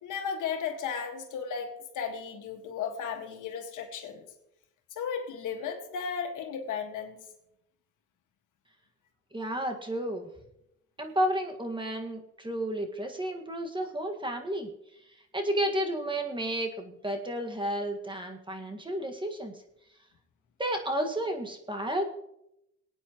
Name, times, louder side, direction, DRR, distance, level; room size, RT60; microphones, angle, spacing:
voice 1, 0.0-4.3 4.9-7.2, left 6 dB, 80° left, 4 dB, 1.9 m, -35 dB
voice 2, 9.3-10.3 11.0-14.7 15.3-19.5 20.6-22.1, right 1 dB, 15° right, 3 dB, 1.8 m, -32 dB
22.0 x 9.0 x 3.1 m, 0.82 s
cardioid pair, 90°, 30 cm